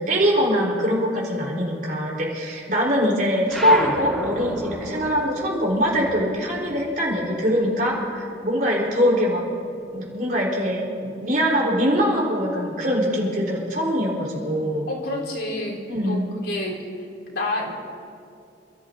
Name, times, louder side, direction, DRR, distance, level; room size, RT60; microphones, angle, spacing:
voice 1, 0.0-9.4 9.9-14.9 15.9-16.3, equal, 50° right, -4 dB, 4.1 m, -23 dB
sound 1, 3.5-8.3 8.6-10.1, equal, ahead, 2.1 m, -34 dB
voice 2, 14.9-16.8 17.3-17.7, left 2 dB, 80° left, -4 dB, 4.0 m, -29 dB
28.5 x 14.0 x 2.8 m, 2.5 s
head